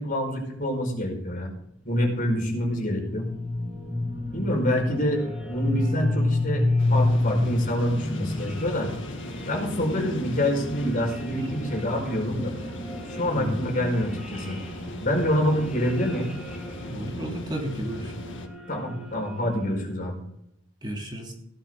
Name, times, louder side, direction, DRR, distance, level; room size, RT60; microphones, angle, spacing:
voice 1, 0.0-1.5 1.9-3.3 4.3-8.9 9.5-12.5 13.1-14.6 15.0-16.3 18.7-20.2, equal, 45° left, 1 dB, 5.0 m, -26 dB
sound 1, 1.7-20.1, left 2 dB, 5° right, 2.9 m, -31 dB
sound 2, 6.8-18.5, left 1 dB, 70° left, 2.0 m, -38 dB
voice 2, 16.9-18.1 20.8-21.3, equal, 25° right, 0 dB, 3.0 m, -32 dB
16.0 x 11.5 x 3.8 m, 0.76 s
head